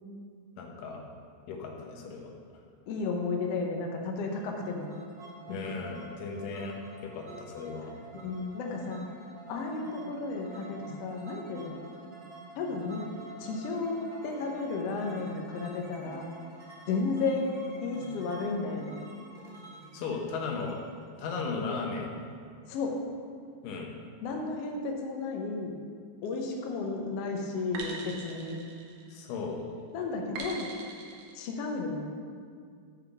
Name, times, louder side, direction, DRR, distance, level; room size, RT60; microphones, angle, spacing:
voice 1, 0.6-1.0 1.5-2.3 5.5-6.8 7.0-7.9 19.9-20.8 21.2-22.1 23.6-23.9 29.1-29.6, left 4 dB, 85° left, 1 dB, 2.6 m, -36 dB
voice 2, 2.9-4.8 5.5-5.6 8.2-9.0 9.5-11.8 12.6-13.1 13.4-16.3 16.9-17.5 17.8-18.9 22.7-23.0 24.2-25.7 26.2-28.6 29.9-30.7 31.3-32.1, left 3 dB, 70° left, 1 dB, 1.5 m, -33 dB
sound 1, 4.3-22.0, right 2 dB, 55° right, 0.6 m, -49 dB
sound 2, 26.2-26.7 27.7-29.4 30.4-31.3, right 3 dB, 85° right, 2.6 m, -42 dB
7.2 x 5.1 x 5.8 m, 2.2 s
omnidirectional pair, 3.8 m